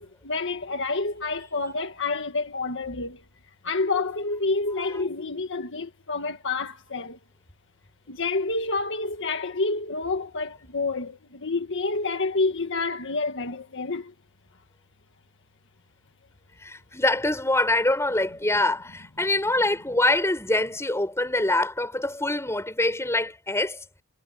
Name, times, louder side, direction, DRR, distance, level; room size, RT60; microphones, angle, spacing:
voice 1, 0.0-3.2 3.6-7.2 8.1-14.1, left 3 dB, 60° left, 1.7 m, -28 dB
voice 2, 16.6-23.8, left 2 dB, 10° left, 6.4 m, -24 dB
head